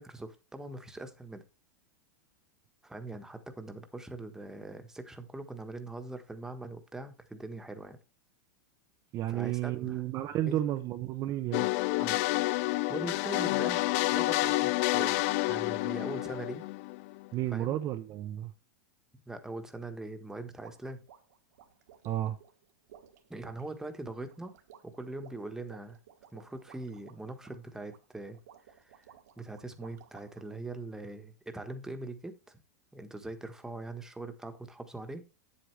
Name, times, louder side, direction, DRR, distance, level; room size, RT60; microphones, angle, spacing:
voice 1, 0.0-1.4 2.8-8.0 9.3-10.0 10.5-10.6 12.0-12.2 12.9-13.8 14.1-16.6 17.5-17.8 19.3-21.0 23.3-24.6 24.8-26.0 26.3-28.4 28.7-29.1 29.4-32.6 32.9-35.2, right 2 dB, 5° right, 1.3 m, -42 dB
voice 2, 9.1-11.7 17.3-18.5 22.0-22.4, right 13 dB, 40° right, 0.7 m, -32 dB
sound 1, 11.5-17.3, left 20 dB, 55° left, 0.5 m, -29 dB
sound 2, 20.6-30.5, right 10 dB, 75° right, 1.6 m, -57 dB
8.5 x 7.9 x 3.3 m
hypercardioid pair, 115°, 9 cm